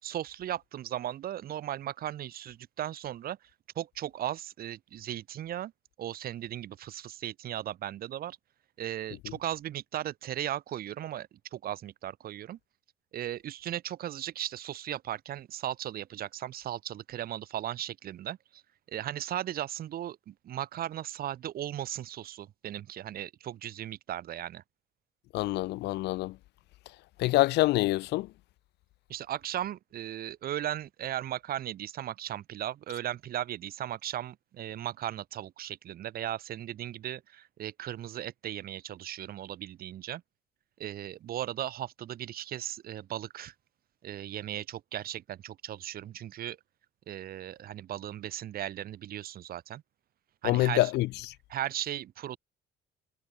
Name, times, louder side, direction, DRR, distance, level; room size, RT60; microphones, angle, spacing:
voice 1, 0.0-3.4 3.8-5.7 6.0-8.4 8.8-12.6 13.1-18.6 18.9-24.6 29.1-40.2 40.8-43.5 44.0-46.6 47.1-49.8 50.4-50.9 51.5-52.4, right 12 dB, 60° right, 3.9 m, -37 dB
voice 2, 25.3-26.4 27.2-28.3 50.4-51.1, left 18 dB, 85° left, 2.2 m, -26 dB
cardioid pair, 110°, 17 cm